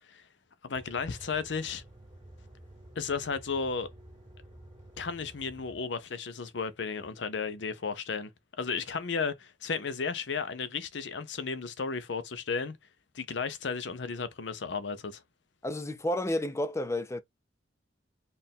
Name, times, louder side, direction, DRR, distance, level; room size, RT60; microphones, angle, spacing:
voice 1, 0.6-1.8 3.0-3.9 5.0-8.3 8.6-12.8 13.1-15.2, left 5 dB, 70° left, 0.7 m, -34 dB
sound 1, 0.7-5.8, right 1 dB, 25° right, 1.7 m, -52 dB
voice 2, 15.6-17.2, left 1 dB, 15° left, 0.4 m, -31 dB
4.4 x 2.5 x 3.5 m
head